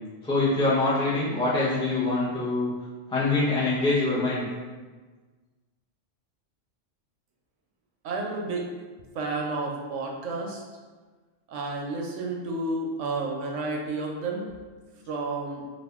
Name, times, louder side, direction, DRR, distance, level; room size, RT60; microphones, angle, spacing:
voice 1, 0.2-2.7 3.1-4.5, left 2 dB, 5° left, -9 dB, 0.5 m, -24 dB
voice 2, 8.0-8.7 9.1-10.6 11.5-14.5 15.1-15.6, right 3 dB, 80° right, 0 dB, 0.9 m, -31 dB
2.7 x 2.4 x 3.4 m, 1.4 s
omnidirectional pair, 1.3 m